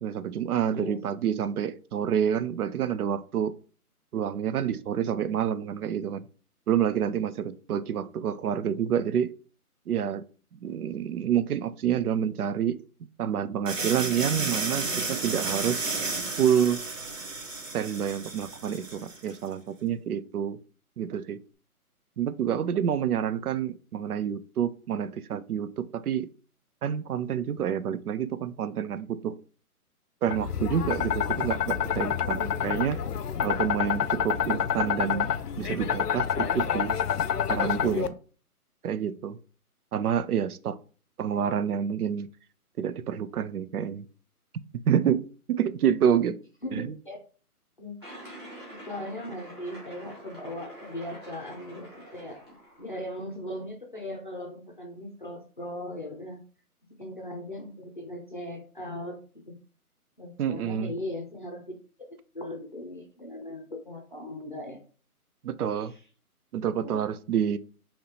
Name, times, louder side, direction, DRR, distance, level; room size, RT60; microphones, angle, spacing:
voice 1, 0.0-3.5 4.1-6.2 6.7-9.3 9.9-10.2 10.5-12.8 13.2-15.8 16.4-16.8 17.7-20.6 21.0-21.4 22.2-26.3 26.8-29.3 30.2-33.0 33.4-35.3 35.6-36.9 37.5-38.2 38.8-39.4 39.9-40.8 41.2-42.3 42.8-44.1 44.9-46.4 46.7-46.9 60.4-60.9 65.4-65.9 66.5-67.6, right 9 dB, 75° right, 0.5 m, -28 dB
voice 2, 0.7-1.0 46.6-47.2 47.8-47.9 48.2-48.4 48.9-52.4 52.8-56.4 57.0-59.2 59.5-59.6 60.2-61.8 62.1-64.8 65.9-66.0 66.8-67.0, left 1 dB, 35° left, 0.6 m, -38 dB
sound 1, 13.7-19.4, right 3 dB, 55° right, 1.1 m, -32 dB
sound 2, 30.3-38.1, left 8 dB, 90° left, 0.6 m, -28 dB
sound 3, 48.0-53.0, right 1 dB, 15° right, 0.9 m, -46 dB
4.8 x 2.9 x 2.8 m
hypercardioid pair, 170°, 45 cm